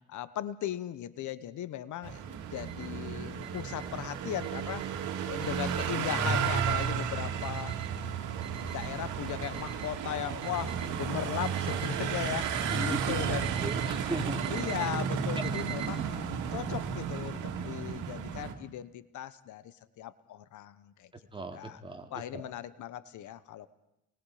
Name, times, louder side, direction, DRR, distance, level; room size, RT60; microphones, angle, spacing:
voice 1, 0.1-5.0 5.2-7.8 8.7-13.5 14.5-16.0 16.5-21.1 21.5-21.8 22.1-23.7, left 11 dB, 75° left, 15 dB, 1.0 m, -38 dB
sound 1, 2.0-18.5, right 7 dB, 85° right, 2.4 m, -33 dB
Alarm, 2.5-2.9 3.4-3.9 4.4-4.9 5.4-5.9 6.4-6.9 7.4-7.9 8.4-8.9 9.4-9.9 10.4-10.9 11.4-11.9 12.4-12.9 13.4-13.9 14.4-14.9 15.4-15.9, right 11 dB, 65° right, 2.8 m, -43 dB
voice 2, 12.7-13.2 13.6-14.5 16.1-16.3 21.3-22.5, right 1 dB, 15° right, 3 dB, 2.9 m, -38 dB
28.0 x 20.5 x 5.0 m, 0.85 s
cardioid pair, 90°, 30 cm